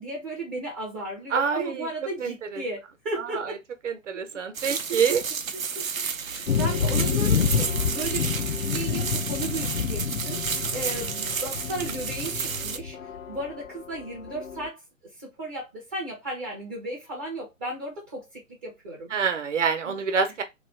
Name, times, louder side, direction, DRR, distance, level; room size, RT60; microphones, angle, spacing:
voice 1, 0.0-3.6 4.7-5.2 5.5-5.9 6.3-10.4 10.7-13.0 13.3-14.8 15.2-19.1 19.8-20.0, right 2 dB, 10° right, 0.4 m, -35 dB
voice 2, 1.3-1.9 2.2-2.6 3.2-3.5 3.8-5.2 19.1-20.4, right 6 dB, 65° right, 0.9 m, -26 dB
sound 1, 4.5-12.8, right 6 dB, 85° right, 0.6 m, -31 dB
sound 2, 6.5-14.7, left 7 dB, 80° left, 0.6 m, -28 dB
3.1 x 2.3 x 3.2 m
figure-of-eight pair, 130°, 40 cm